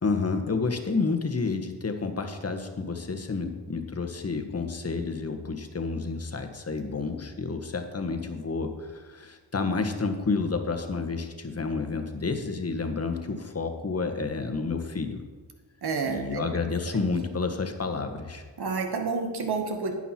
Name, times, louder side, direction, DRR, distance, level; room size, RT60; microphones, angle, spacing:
voice 1, 0.0-15.2 16.0-18.4, left 4 dB, 35° left, 5 dB, 1.6 m, -30 dB
voice 2, 15.8-16.4 16.9-17.0 18.6-19.9, right 4 dB, 60° right, 4 dB, 2.0 m, -29 dB
10.5 x 9.0 x 4.5 m, 1.4 s
cardioid pair, 55°, 42 cm